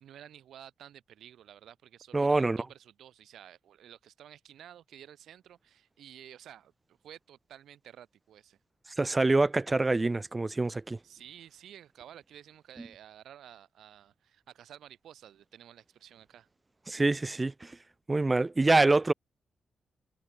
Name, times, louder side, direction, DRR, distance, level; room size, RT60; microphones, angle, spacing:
voice 1, 0.0-8.6 11.0-16.5, right 10 dB, 90° right, 3.1 m, -52 dB
voice 2, 2.1-2.6 9.0-11.0 16.9-17.8 18.1-19.1, right 2 dB, 15° right, 0.3 m, -25 dB
wide cardioid pair, 170°, 0 cm